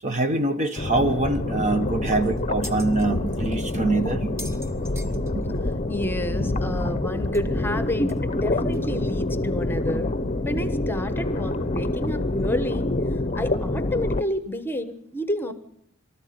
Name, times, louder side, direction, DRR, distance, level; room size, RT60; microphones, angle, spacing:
voice 1, 0.0-4.3, right 2 dB, 35° right, 8 dB, 1.4 m, -24 dB
sound 1, 0.8-14.2, left 2 dB, 30° left, 0.8 m, -27 dB
sound 2, 1.1-9.6, right 2 dB, 50° right, 1.9 m, -37 dB
sound 3, 1.7-1.8 2.1-3.1 3.6-3.7 4.1-5.7 6.0-6.1 6.4-6.5 7.3-7.4 8.1-8.2 8.7-8.8, equal, 15° right, 1.8 m, -41 dB
voice 2, 5.6-10.1 10.4-12.9 13.3-15.5, left 1 dB, 10° left, 10 dB, 1.2 m, -30 dB
24.0 x 14.0 x 9.6 m, 0.75 s
head